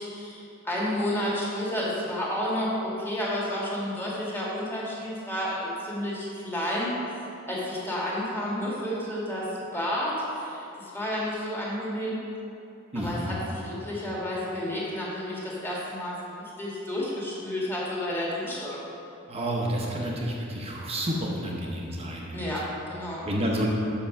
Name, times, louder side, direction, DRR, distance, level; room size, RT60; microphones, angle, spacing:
voice 1, 0.0-6.9 7.5-9.4 9.7-12.1 12.9-18.8 22.3-23.2, left 1 dB, 10° left, -6 dB, 1.7 m, -31 dB
voice 2, 12.9-13.4 19.3-22.4 23.2-23.7, equal, 30° right, -2 dB, 0.8 m, -29 dB
6.0 x 5.6 x 6.3 m, 2.7 s
head